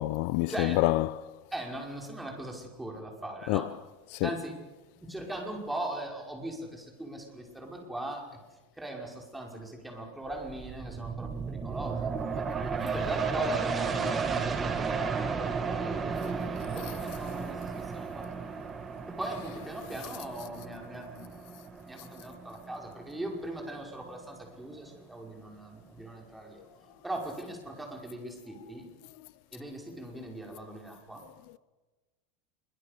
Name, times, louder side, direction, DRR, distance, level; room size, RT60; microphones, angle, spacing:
voice 1, 0.0-1.3 3.5-3.7 4.1-4.3, left 19 dB, 60° left, 0.7 m, -27 dB
voice 2, 1.5-3.7 4.2-4.6 4.9-8.4 8.8-12.1 12.3-12.4 12.9-15.1 15.7-18.3 19.1-21.5 21.9-26.6 27.0-28.9 29.5-31.2, right 1 dB, 5° right, 5.6 m, -39 dB
sound 1, 10.3-23.6 24.0-24.1, right 5 dB, 20° right, 2.5 m, -34 dB
25.5 x 23.0 x 6.8 m
supercardioid pair, 130°, 0 cm